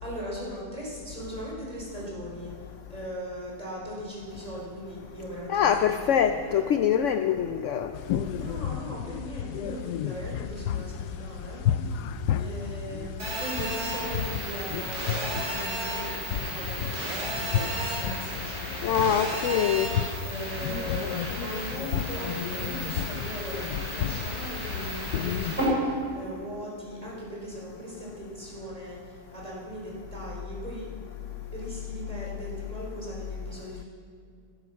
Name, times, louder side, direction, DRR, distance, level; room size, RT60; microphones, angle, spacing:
voice 1, 0.0-2.5 2.9-6.7 8.3-12.1 12.4-19.7 20.2-30.9 31.5-33.8, right 1 dB, 25° right, -5 dB, 4.4 m, -39 dB
voice 2, 5.5-7.9 18.8-19.9, left 8 dB, 65° left, 9 dB, 0.8 m, -24 dB
sound 1, 7.9-25.7, left 9 dB, 85° left, 1.2 m, -33 dB
Telephone, 13.2-25.6, right 1 dB, 45° right, 4.9 m, -34 dB
15.0 x 13.0 x 6.3 m, 2.3 s
omnidirectional pair, 1.7 m